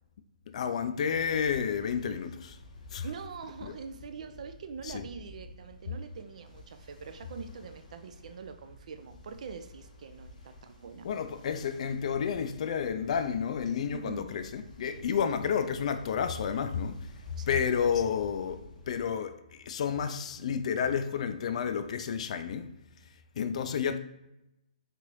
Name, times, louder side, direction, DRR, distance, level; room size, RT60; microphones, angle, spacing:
voice 1, 0.5-2.6 2.9-3.1 3.6-3.8 4.8-5.0 11.0-17.1 17.5-22.7 23.4-24.0, left 7 dB, 55° left, 0.3 m, -31 dB
Ocean, 1.1-19.1, left 2 dB, 75° left, 0.7 m, -52 dB
voice 2, 3.0-11.1 13.9-14.3 17.4-17.6, right 6 dB, 60° right, 0.4 m, -44 dB
3.2 x 2.5 x 3.0 m
hypercardioid pair, 140°, 4 cm